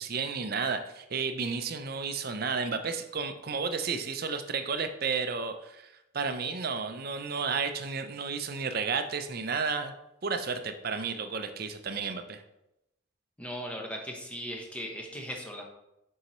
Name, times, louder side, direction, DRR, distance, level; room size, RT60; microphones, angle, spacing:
voice 1, 0.0-9.9 10.2-12.4, right 5 dB, 45° right, 8 dB, 0.5 m, -32 dB
voice 2, 13.4-15.7, equal, 5° left, 1 dB, 0.8 m, -38 dB
6.7 x 5.5 x 3.1 m, 0.87 s
head